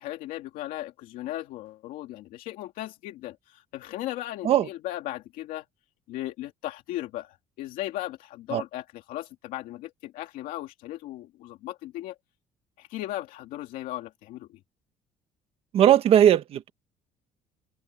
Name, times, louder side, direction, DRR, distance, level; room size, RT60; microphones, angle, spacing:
voice 1, 0.0-5.6 6.1-12.1 12.8-14.6, left 15 dB, 75° left, 2.5 m, -37 dB
voice 2, 15.7-16.7, right 10 dB, 45° right, 1.4 m, -19 dB
open air
cardioid pair, 175°, 14 cm